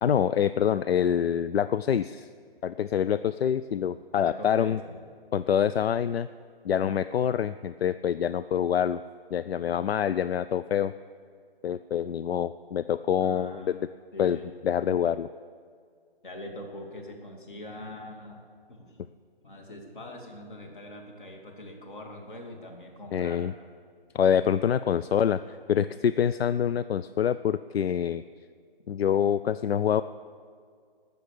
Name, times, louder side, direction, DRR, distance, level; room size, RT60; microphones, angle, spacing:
voice 1, 0.0-2.3 2.6-4.8 5.3-6.3 6.6-9.0 9.3-10.9 11.6-13.9 14.2-15.3 23.1-23.5 24.1-28.2 28.9-30.0, left 9 dB, 80° left, 14 dB, 0.5 m, -26 dB
voice 2, 4.2-5.0 13.2-13.7 14.1-14.5 16.2-19.0 19.4-23.5, left 1 dB, 55° left, 2 dB, 2.6 m, -43 dB
18.0 x 6.8 x 6.7 m, 2.1 s
hypercardioid pair, 175°, 30 cm